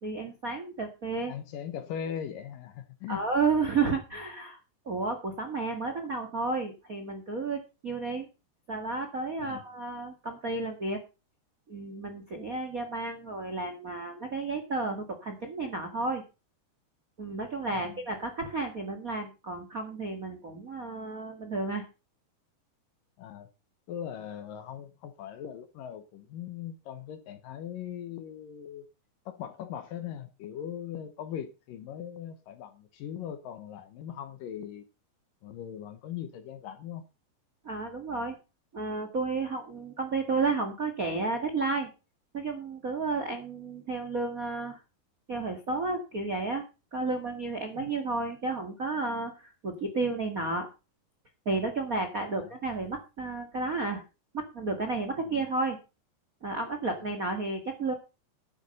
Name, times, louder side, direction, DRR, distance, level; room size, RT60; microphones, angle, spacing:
voice 1, 0.0-1.3 3.1-4.6 4.8-8.3 8.7-11.0 11.7-16.2 17.2-21.8 37.6-38.3 38.7-41.9 42.3-44.8 45.3-46.6 46.9-50.7 51.4-54.0 54.3-55.8 56.4-57.9, right 3 dB, 75° right, 0.7 m, -32 dB
voice 2, 1.3-3.2 9.4-9.6 17.7-18.0 23.2-23.5 23.9-28.9 29.3-34.8 35.4-37.0 47.7-47.9 52.3-52.5 55.2-55.3 57.0-57.1, left 9 dB, 70° left, 2.3 m, -40 dB
11.5 x 8.5 x 5.4 m
omnidirectional pair, 4.8 m